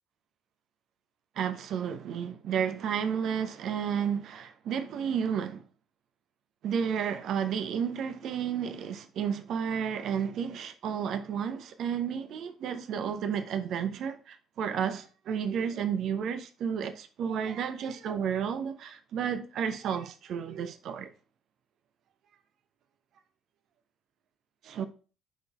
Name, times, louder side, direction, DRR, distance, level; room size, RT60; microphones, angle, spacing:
voice 1, 1.4-5.6 6.6-21.1 24.6-24.9, right 7 dB, 55° right, 0.7 m, -32 dB
10.0 x 3.9 x 2.4 m
figure-of-eight pair, 50°, 0 cm